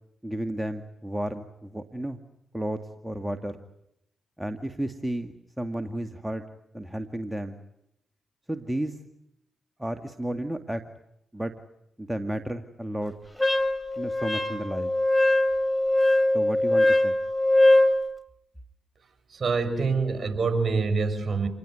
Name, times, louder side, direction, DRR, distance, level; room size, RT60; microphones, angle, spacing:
voice 1, 0.2-2.2 2.5-3.6 4.4-6.4 6.7-7.6 8.5-9.0 9.8-10.8 11.3-11.5 12.0-13.1 14.0-14.9 16.3-17.1, right 1 dB, 10° right, 7 dB, 2.1 m, -32 dB
Wind instrument woodwind instrument, 13.4-18.0, left 1 dB, 5° left, 3.4 m, -22 dB
voice 2, 19.3-21.5, right 4 dB, 45° right, 9 dB, 6.8 m, -25 dB
28.0 x 21.0 x 9.3 m, 0.80 s
supercardioid pair, 45°, 0 cm